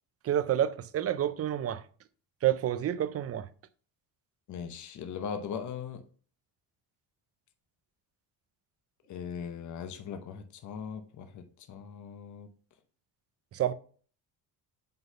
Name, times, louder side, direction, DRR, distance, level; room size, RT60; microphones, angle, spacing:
voice 1, 0.2-1.8 2.4-3.5 13.5-13.7, right 11 dB, 40° right, 0.5 m, -29 dB
voice 2, 4.5-6.0 9.1-12.5, left 7 dB, 50° left, 0.8 m, -39 dB
5.5 x 3.9 x 5.4 m
cardioid pair, 115°, 38 cm